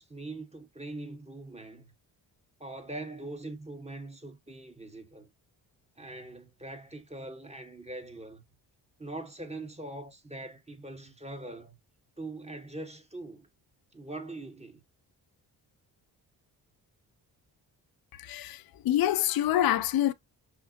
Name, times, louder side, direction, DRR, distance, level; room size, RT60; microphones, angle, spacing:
voice 1, 0.0-1.9 2.6-5.3 6.0-8.4 9.0-11.8 12.2-13.5 13.9-14.8, right 2 dB, 15° right, 1.1 m, -42 dB
voice 2, 18.1-20.1, left 12 dB, 50° left, 0.5 m, -26 dB
5.6 x 2.1 x 2.7 m
supercardioid pair, 45°, 48 cm